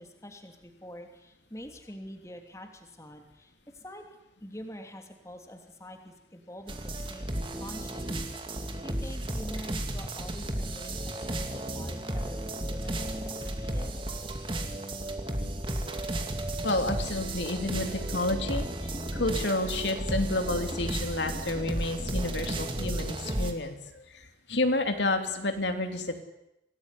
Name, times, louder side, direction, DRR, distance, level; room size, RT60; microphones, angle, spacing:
voice 1, 0.0-4.0 4.4-7.3 7.6-8.0 8.8-13.9, equal, 15° left, 4 dB, 3.0 m, -46 dB
sound 1, 6.7-23.5, right 1 dB, 30° right, 2.8 m, -33 dB
voice 2, 16.6-26.2, left 2 dB, 80° left, 6 dB, 3.2 m, -30 dB
27.0 x 19.0 x 10.0 m, 0.87 s
head